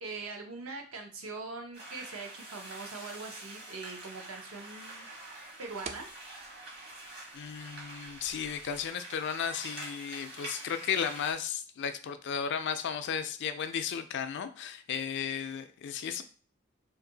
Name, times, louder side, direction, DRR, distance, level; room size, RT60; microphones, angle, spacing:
voice 1, 0.0-5.1 5.6-6.1, right 3 dB, 70° right, 3 dB, 0.7 m, -42 dB
sound 1, 1.7-11.3, right 2 dB, 50° right, 1.2 m, -46 dB
sound 2, 3.6-8.9, right 5 dB, 35° right, 0.3 m, -52 dB
voice 2, 7.3-16.2, left 7 dB, 55° left, 9 dB, 0.4 m, -34 dB
2.6 x 2.5 x 3.8 m, 0.41 s
head